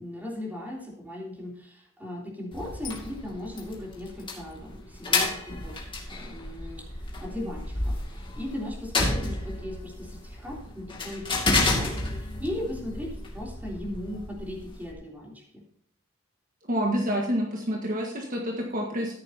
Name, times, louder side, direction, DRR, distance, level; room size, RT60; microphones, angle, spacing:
voice 1, 0.0-5.8 6.1-15.4, left 1 dB, 10° right, -2 dB, 3.3 m, -37 dB
sound 1, 2.5-14.9, left 2 dB, 25° left, 2.4 m, -31 dB
voice 2, 16.7-19.1, equal, 40° right, 0 dB, 1.6 m, -28 dB
14.0 x 10.5 x 2.9 m, 0.68 s
head